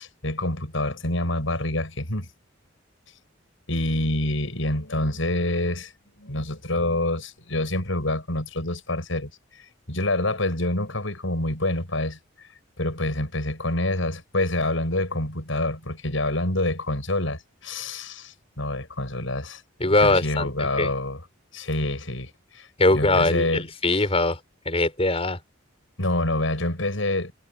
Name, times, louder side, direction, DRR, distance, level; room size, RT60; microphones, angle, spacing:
voice 1, 0.0-2.3 3.7-5.9 6.2-9.3 9.6-12.2 12.8-19.6 20.0-21.2 21.5-22.7 22.9-23.6 26.0-27.3, left 1 dB, 75° left, 6.9 m, -27 dB
voice 2, 19.8-20.9 22.8-24.4 24.7-25.4, left 2 dB, 30° left, 5.3 m, -21 dB
head